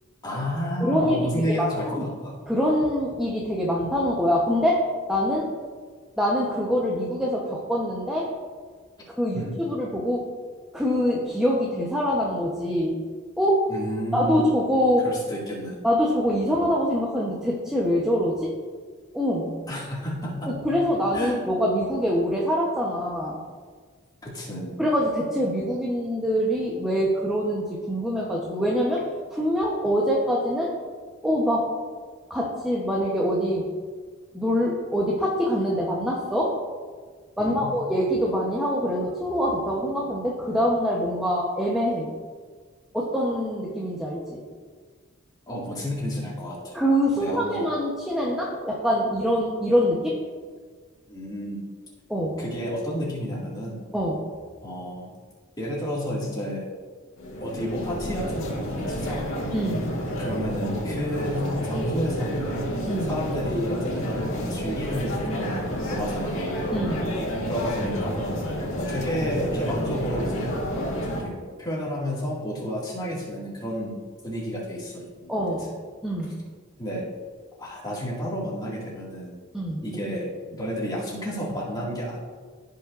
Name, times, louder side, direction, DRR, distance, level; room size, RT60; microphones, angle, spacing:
voice 1, 0.2-2.3 9.3-9.7 13.7-14.6 15.0-15.9 19.7-20.7 21.1-21.4 24.2-24.8 37.4-37.7 45.5-46.8 47.1-47.7 51.1-51.6 52.4-53.8 54.6-55.1 55.6-56.7 57.4-59.3 60.1-62.7 63.1-66.5 67.5-68.2 68.7-70.6 71.2-74.0 74.2-75.3 76.8-77.1 77.6-79.3 79.8-82.2, equal, 20° left, -6 dB, 2.1 m, -31 dB
voice 2, 0.8-2.0 2.5-5.5 6.2-8.3 9.2-10.3 10.7-13.0 13.4-13.6 14.1-15.0 15.8-18.5 19.1-19.5 20.4-23.4 24.8-29.0 29.3-30.7 31.2-31.7 32.3-33.7 34.3-36.5 37.4-42.1 42.9-44.4 46.7-50.2 52.1-52.4 53.9-54.3 59.5-59.9 62.9-63.1 66.7-67.1 75.3-75.7 76.0-76.4 79.5-79.8, equal, 5° right, -4 dB, 0.9 m, -24 dB
sound 1, 57.2-71.2, equal, 70° left, 1.7 m, -30 dB
15.0 x 5.6 x 2.5 m, 1.6 s
head